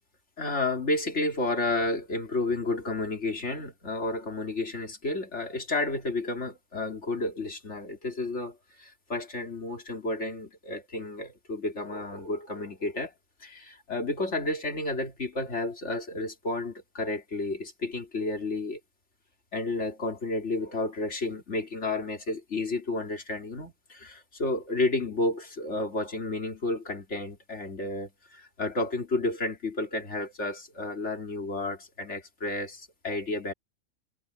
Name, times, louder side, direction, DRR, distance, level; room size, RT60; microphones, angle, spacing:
voice 1, 0.4-13.1 13.4-18.8 19.5-33.5, left 2 dB, 65° left, 3.5 m, -31 dB
omnidirectional pair, 1.3 m